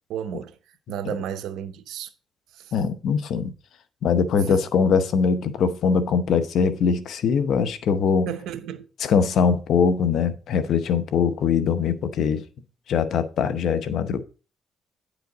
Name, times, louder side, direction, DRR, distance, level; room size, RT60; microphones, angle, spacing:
voice 1, 0.1-0.6 0.9-2.1 2.5-2.7 4.3-4.6 8.3-8.8, right 9 dB, 85° right, 0.8 m, -32 dB
voice 2, 2.7-3.5 4.0-8.3 9.0-12.4 12.9-14.2, left 6 dB, 70° left, 0.8 m, -22 dB
9.2 x 5.0 x 3.9 m
cardioid pair, 90°, 0 cm